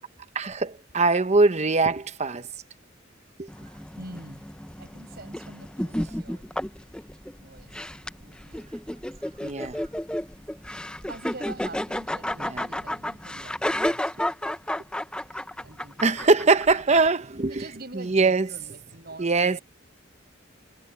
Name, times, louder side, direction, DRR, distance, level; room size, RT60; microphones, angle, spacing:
voice 1, 0.3-2.5 3.4-3.5 9.4-9.8 12.4-12.7 16.0-17.6 17.9-18.5 19.2-19.6, right 3 dB, 35° right, 0.9 m, -22 dB
sound 1, 3.5-17.1, left 1 dB, 5° left, 0.6 m, -32 dB
voice 2, 4.0-4.5 4.8-6.5 7.4-7.9 8.2-8.7 8.9-9.1 11.1-14.3 15.6-16.2 17.4-19.6, right 2 dB, 55° right, 6.2 m, -45 dB
head